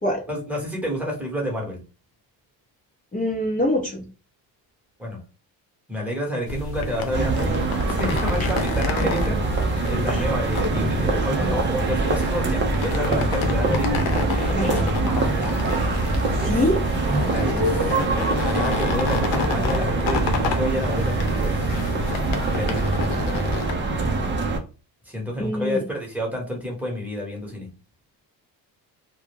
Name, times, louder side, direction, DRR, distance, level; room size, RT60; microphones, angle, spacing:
voice 1, 0.3-1.8 5.0-5.2 5.9-15.7 16.3-16.6 17.2-18.2 18.5-21.7 22.6-22.9 25.0-27.7, equal, 5° right, -2 dB, 1.1 m, -30 dB
voice 2, 3.1-4.0 10.1-10.2 14.5-14.9 16.3-16.8 25.4-25.8, left 1 dB, 20° left, -3 dB, 0.7 m, -24 dB
sound 1, 6.4-23.7, left 4 dB, 80° left, 0.7 m, -31 dB
sound 2, 7.1-24.6, right 2 dB, 25° right, 0.5 m, -23 dB
2.2 x 2.2 x 3.2 m, 0.33 s
cardioid pair, 110°, 44 cm